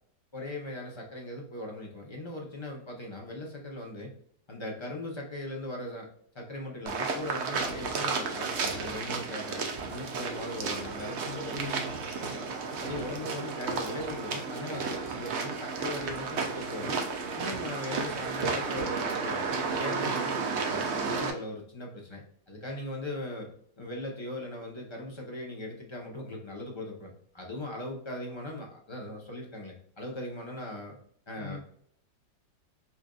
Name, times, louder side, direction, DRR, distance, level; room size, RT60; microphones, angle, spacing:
voice 1, 0.3-4.1 4.5-6.1 6.3-11.8 12.8-17.0 17.3-23.5 23.8-31.0 31.3-31.6, left 1 dB, 30° left, -1 dB, 0.5 m, -39 dB
sound 1, 6.9-21.3, right 4 dB, 60° right, 0.7 m, -33 dB
voice 2, 11.2-12.5 31.4-31.6, left 1 dB, 70° left, -2 dB, 1.9 m, -41 dB
5.6 x 2.6 x 2.3 m, 0.64 s
omnidirectional pair, 1.9 m